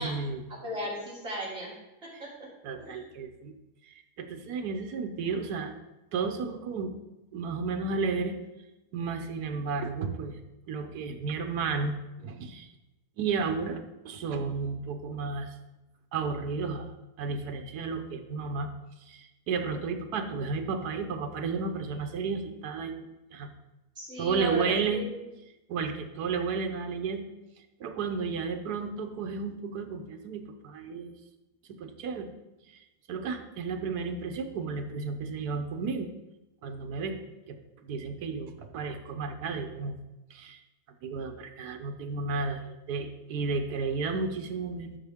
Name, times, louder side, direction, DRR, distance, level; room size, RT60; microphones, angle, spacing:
voice 1, 0.0-0.4 2.1-2.2 2.6-3.5 3.9-5.7 6.1-7.0 7.3-8.4 8.9-10.4 10.7-11.9 12.2-12.7 13.2-13.8 14.0-15.5 16.1-18.7 19.1-22.9 23.3-23.5 24.2-25.0 25.7-27.3 27.8-31.1 31.7-32.3 32.7-32.8 33.1-36.1 36.6-37.2 37.5-37.6 37.8-39.9 40.3-40.6 41.0-45.0, right 4 dB, 75° right, 6 dB, 1.4 m, -32 dB
voice 2, 0.6-1.7 2.2-2.3 2.8-3.1 24.0-24.6 24.9-25.1, equal, 35° right, -8 dB, 3.5 m, -35 dB
12.5 x 5.8 x 3.6 m, 1.0 s
omnidirectional pair, 1.7 m